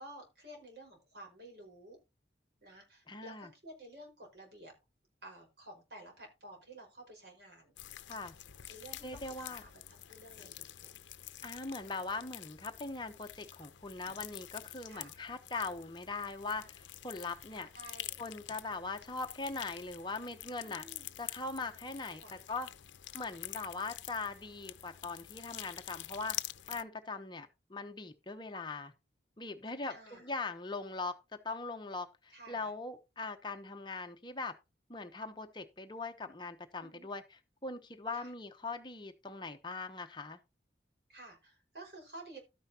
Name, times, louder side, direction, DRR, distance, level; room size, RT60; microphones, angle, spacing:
voice 1, 0.0-2.0 2.6-4.7 5.2-7.7 8.7-10.9 14.9-15.1 17.7-18.2 20.6-21.1 22.2-22.4 29.9-30.3 32.3-32.7 36.8-37.1 38.1-38.3 41.1-42.4, right 1 dB, 60° right, 5.1 m, -52 dB
voice 2, 3.1-3.5 8.1-8.3 9.0-9.6 11.4-17.7 18.2-20.8 21.2-22.7 23.1-26.4 26.7-28.9 29.4-31.1 31.4-34.5 34.9-37.2 37.6-40.4, left 3 dB, 25° left, 0.8 m, -41 dB
sound 1, 7.8-26.8, left 13 dB, 80° left, 0.6 m, -47 dB
12.5 x 9.5 x 2.8 m
head